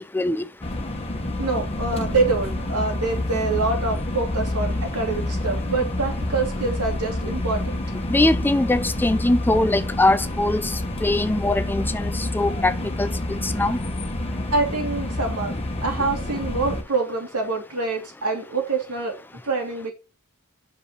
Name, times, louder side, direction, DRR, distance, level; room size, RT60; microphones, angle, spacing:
voice 1, 0.1-0.5 8.1-13.8, left 2 dB, 10° left, 0.3 m, -22 dB
sound 1, 0.6-16.8, left 1 dB, 25° left, 1.1 m, -28 dB
voice 2, 1.4-7.8 14.5-15.5 15.8-19.1 19.4-19.9, right 3 dB, 80° right, 2.8 m, -25 dB
6.1 x 5.3 x 5.4 m
head